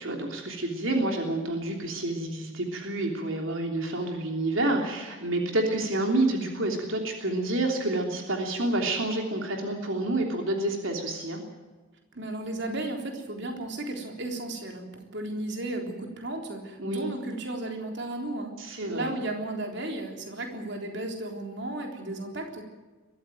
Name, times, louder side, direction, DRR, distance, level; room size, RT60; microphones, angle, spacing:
voice 1, 0.0-11.4 16.8-17.1 18.6-19.1, right 2 dB, 75° right, 2 dB, 3.2 m, -28 dB
voice 2, 12.1-22.6, right 2 dB, 55° right, 3 dB, 3.7 m, -34 dB
22.5 x 14.5 x 9.2 m, 1.3 s
head